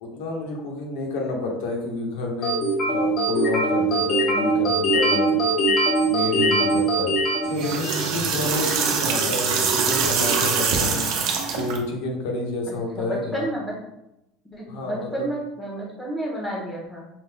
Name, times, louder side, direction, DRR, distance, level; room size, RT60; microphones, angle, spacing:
voice 1, 0.0-2.6 2.9-5.7 6.1-7.1 7.5-11.1 11.5-13.4 14.7-15.3, left 2 dB, 80° left, 0 dB, 1.3 m, -29 dB
sound 1, 2.4-8.2, right 1 dB, 35° left, 1.3 m, -22 dB
sound 2, 7.4-11.8, right 5 dB, 55° right, 0.8 m, -23 dB
voice 2, 12.7-13.7 14.4-17.1, right 1 dB, 10° left, -3 dB, 1.2 m, -31 dB
5.3 x 3.6 x 2.3 m, 0.86 s
cardioid pair, 165°, 0 cm